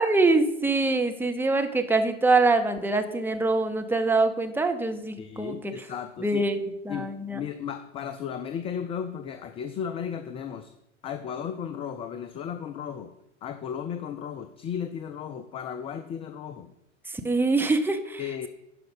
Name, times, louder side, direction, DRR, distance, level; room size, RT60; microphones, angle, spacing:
voice 1, 0.0-5.7 6.2-7.4 17.1-18.2, right 3 dB, 5° right, 6 dB, 0.7 m, -24 dB
voice 2, 5.2-6.4 6.9-10.7 11.0-13.1 13.4-16.7 18.2-18.5, left 8 dB, 15° left, 10 dB, 0.3 m, -35 dB
11.5 x 5.0 x 5.2 m, 0.85 s
figure-of-eight pair, 90°, 37 cm